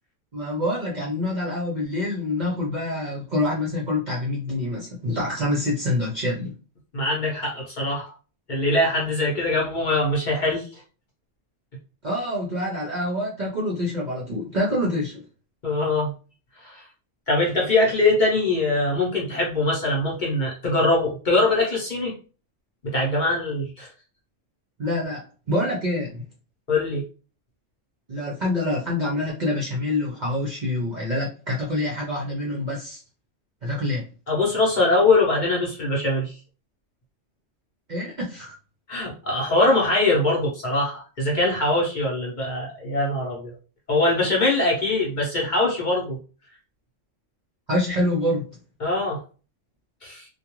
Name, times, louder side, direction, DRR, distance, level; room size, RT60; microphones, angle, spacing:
voice 1, 0.3-6.5 12.0-15.2 24.8-26.2 28.1-33.0 33.6-34.0 37.9-38.6 47.7-48.5, left 1 dB, 50° right, -3 dB, 0.6 m, -26 dB
voice 2, 6.9-8.1 8.5-10.7 15.6-16.1 16.6-16.8 17.3-22.1 22.8-23.9 26.7-27.0 34.3-36.3 38.9-43.5 43.9-46.2 48.8-49.2 50.0-50.3, left 2 dB, 45° left, -3 dB, 0.8 m, -22 dB
2.3 x 2.2 x 2.9 m, 0.36 s
omnidirectional pair, 1.3 m